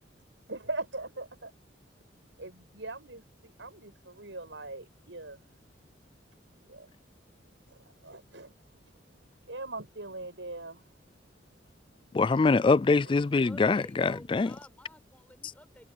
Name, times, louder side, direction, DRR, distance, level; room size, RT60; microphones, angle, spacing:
voice 1, 0.5-1.5 2.4-5.4 6.6-6.9 7.3-8.5 8.9-9.0 9.4-10.9, right 2 dB, 85° right, 7.5 m, -41 dB
voice 2, 12.1-14.5, left 4 dB, 30° left, 0.3 m, -24 dB
voice 3, 13.4-15.9, left 1 dB, 10° left, 7.6 m, -52 dB
head